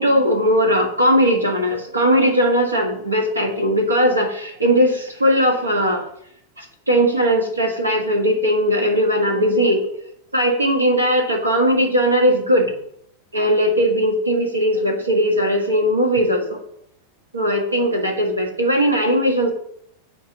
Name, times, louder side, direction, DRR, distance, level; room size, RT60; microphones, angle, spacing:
voice 1, 0.0-6.0 6.6-9.9 10.3-12.7 13.3-16.6 17.3-19.5, equal, 80° right, 3 dB, 1.4 m, -18 dB
9.3 x 3.3 x 6.7 m, 0.72 s
figure-of-eight pair, 90°, 0 cm